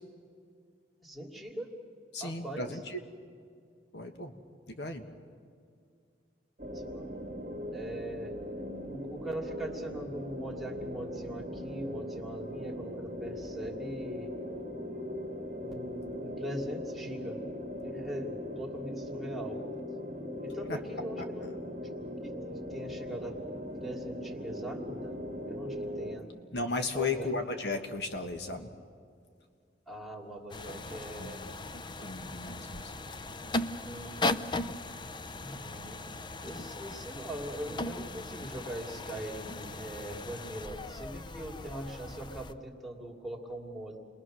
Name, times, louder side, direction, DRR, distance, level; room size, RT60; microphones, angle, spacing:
voice 1, 1.0-1.7 2.2-2.8 6.7-7.2 7.7-8.4 8.9-14.3 15.6-17.4 17.8-19.6 20.4-21.5 22.2-23.4 23.7-25.2 25.4-26.3 26.9-27.3 29.9-31.4 33.8-34.3 35.4-36.0 36.4-44.0, right 1 dB, ahead, -2 dB, 2.6 m, -41 dB
voice 2, 2.1-3.0 3.9-4.3 4.7-5.0 20.7-20.8 26.5-28.7 30.7-30.8 31.1-31.3 32.0-32.9, left 3 dB, 70° left, 5 dB, 1.5 m, -35 dB
sound 1, 6.6-26.2, equal, 45° right, 2.1 m, -39 dB
sound 2, 30.5-42.5, left 2 dB, 25° left, 0.5 m, -38 dB
29.5 x 22.0 x 6.3 m, 2.2 s
head